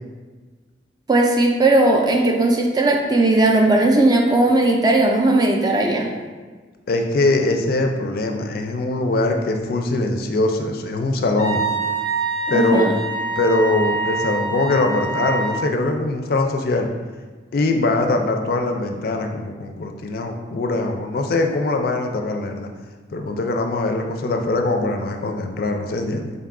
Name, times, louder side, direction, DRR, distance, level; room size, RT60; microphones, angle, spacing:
voice 1, 1.1-6.1 12.5-12.9, right 2 dB, 20° right, 1 dB, 0.3 m, -17 dB
voice 2, 6.9-11.6 12.5-13.0 13.4-16.9 17.5-22.7 23.1-26.3, left 2 dB, 55° left, 4 dB, 0.3 m, -22 dB
Wind instrument woodwind instrument, 11.4-15.6, right 3 dB, 85° right, 1.0 m, -25 dB
3.9 x 2.3 x 3.6 m, 1.4 s
head